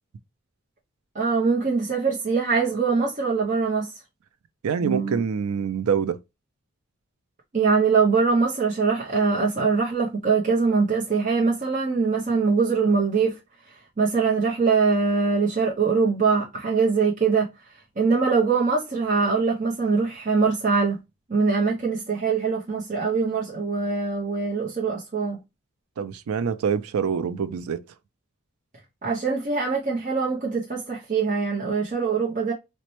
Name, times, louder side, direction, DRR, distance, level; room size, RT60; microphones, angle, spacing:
voice 1, 1.1-3.9 4.8-5.2 7.5-13.3 14.0-17.5 18.0-21.0 21.3-25.4 29.0-32.5, right 4 dB, 35° right, 0.6 m, -23 dB
voice 2, 4.6-6.2 26.0-27.8, right 6 dB, 90° right, 0.4 m, -25 dB
4.1 x 2.1 x 3.0 m
head